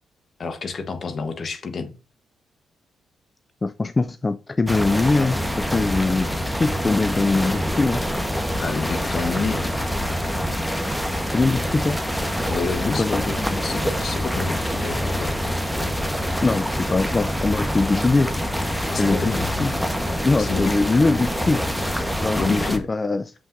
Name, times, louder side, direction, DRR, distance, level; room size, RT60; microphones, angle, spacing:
voice 1, 0.4-1.9 8.6-9.6 12.5-15.3 18.9-19.7 20.2-20.7 22.3-22.9, left 4 dB, 50° left, 8 dB, 1.1 m, -29 dB
voice 2, 3.6-8.0 11.3-12.0 12.9-13.6 16.4-18.3 19.0-19.3 19.6-19.7 20.2-21.6 22.2-23.3, left 3 dB, 30° left, 13 dB, 0.3 m, -22 dB
sound 1, 4.7-22.8, equal, 5° left, 1.1 m, -25 dB
7.0 x 5.6 x 2.6 m, 0.33 s
hypercardioid pair, 45°, 0 cm